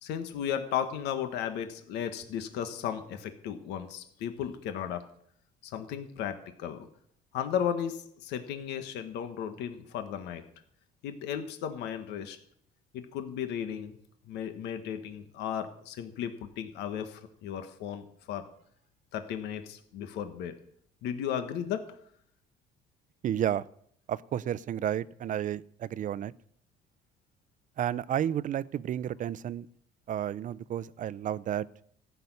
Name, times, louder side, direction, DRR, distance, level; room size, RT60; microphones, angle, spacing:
voice 1, 0.0-5.0 5.6-6.9 7.3-10.4 11.0-12.4 12.9-13.9 14.3-18.5 19.1-20.6 21.0-21.9, left 9 dB, 85° left, 9 dB, 1.4 m, -35 dB
voice 2, 23.2-23.6 24.1-26.3 27.8-29.7 30.1-31.7, right 10 dB, 50° right, 18 dB, 0.6 m, -31 dB
15.0 x 6.9 x 9.5 m, 0.66 s
cardioid pair, 110°, 17 cm